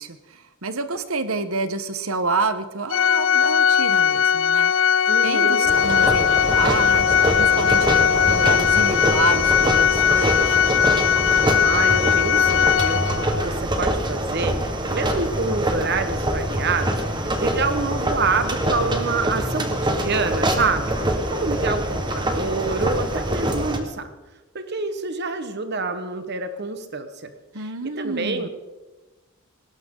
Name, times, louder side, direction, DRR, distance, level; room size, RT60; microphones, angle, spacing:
voice 1, 0.0-10.6 27.5-28.5, right 3 dB, 80° right, 11 dB, 1.2 m, -29 dB
Organ, 2.9-13.5, left 8 dB, 60° left, 0.5 m, -19 dB
voice 2, 5.1-5.8 11.5-24.1 24.5-27.3 28.0-28.5, right 3 dB, 50° right, 9 dB, 1.4 m, -27 dB
sound 1, 5.7-23.8, right 1 dB, 20° right, 1.5 m, -25 dB
19.5 x 17.5 x 3.9 m, 1.1 s
head